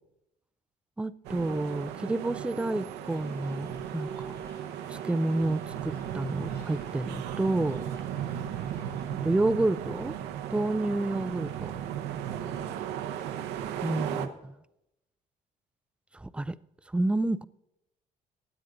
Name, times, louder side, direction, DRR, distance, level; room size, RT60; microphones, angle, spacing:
voice 1, 1.0-4.3 4.9-7.9 9.2-10.1 10.5-11.7 13.8-14.5 16.1-16.6 16.9-17.5, right 2 dB, 5° right, 0.4 m, -29 dB
sound 1, 1.2-14.3, right 9 dB, 90° right, 0.9 m, -36 dB
sound 2, 3.1-9.1, left 6 dB, 75° left, 2.5 m, -61 dB
16.0 x 9.9 x 3.8 m
cardioid pair, 110°, 17 cm